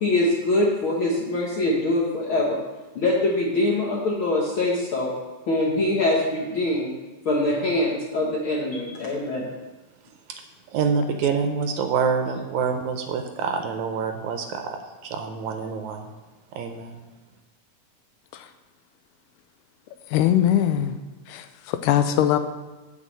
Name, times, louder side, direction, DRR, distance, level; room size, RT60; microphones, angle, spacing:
voice 1, 0.0-2.6 2.9-5.1 5.5-6.9 7.2-9.4, left 2 dB, 65° left, -3 dB, 1.3 m, -23 dB
voice 2, 10.7-16.1 16.6-17.0, right 5 dB, 75° right, 6 dB, 1.8 m, -26 dB
voice 3, 20.1-21.0 21.3-22.4, left 11 dB, 80° left, 9 dB, 2.1 m, -21 dB
8.1 x 5.2 x 7.5 m, 1.2 s
omnidirectional pair, 3.7 m